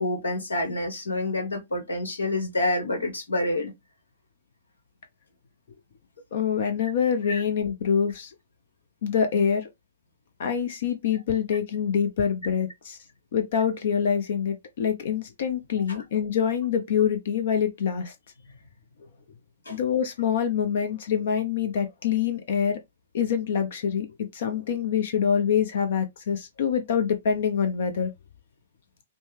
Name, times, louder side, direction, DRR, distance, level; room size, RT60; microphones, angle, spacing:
voice 1, 0.0-3.7 7.3-7.4 15.9-16.0 19.6-19.8, left 2 dB, 80° left, 1.3 m, -28 dB
voice 2, 6.3-8.3 9.0-9.7 10.4-13.0 13.3-18.1 19.7-22.8 23.1-24.1 24.3-28.1, left 7 dB, 60° left, 0.7 m, -25 dB
5.3 x 2.2 x 3.2 m
figure-of-eight pair, 115°, 0 cm